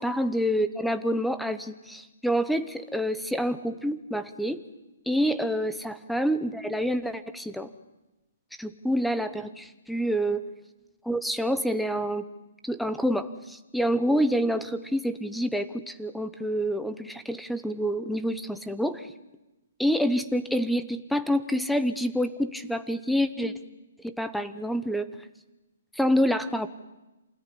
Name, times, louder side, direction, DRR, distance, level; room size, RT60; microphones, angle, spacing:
voice 1, 0.0-4.6 5.1-7.7 8.6-10.4 11.0-12.2 12.6-19.1 19.8-23.5 24.0-25.1 25.9-26.7, equal, ahead, 11 dB, 0.8 m, -27 dB
27.5 x 18.5 x 10.0 m, 1.0 s
hypercardioid pair, 170°, 0 cm